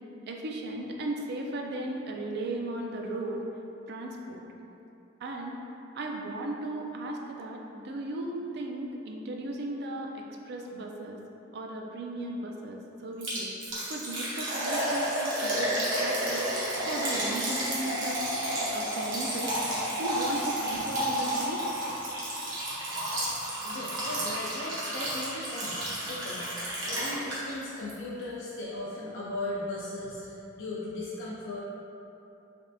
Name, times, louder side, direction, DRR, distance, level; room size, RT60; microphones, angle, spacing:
voice 1, 0.3-3.4 3.9-4.4 5.2-5.6 5.9-11.2 11.5-13.5 13.9-16.5 16.9-18.2 18.7-19.5 20.0-21.6, right 1 dB, 55° right, 1 dB, 0.3 m, -36 dB
Liquid, 13.2-27.6 27.9-28.0 28.5-28.6, right 1 dB, 70° right, 0.9 m, -31 dB
voice 2, 23.6-26.6 26.9-31.6, left 2 dB, 70° left, -8 dB, 0.4 m, -37 dB
3.4 x 3.1 x 2.5 m, 2.9 s
head